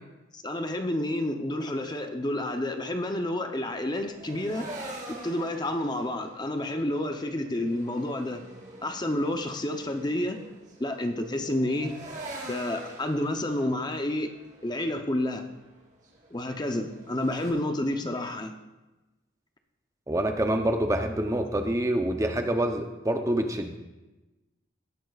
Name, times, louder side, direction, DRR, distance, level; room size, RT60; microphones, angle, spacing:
voice 1, 0.3-4.7 5.2-8.4 8.8-10.4 10.8-11.9 12.5-14.3 14.6-15.4 16.3-18.5, left 1 dB, 20° left, 5 dB, 0.6 m, -29 dB
sound 1, 3.7-17.5, right 1 dB, 40° right, 3.1 m, -45 dB
voice 2, 20.1-23.8, right 1 dB, 15° right, 5 dB, 0.6 m, -26 dB
17.0 x 10.5 x 2.4 m, 1.1 s
head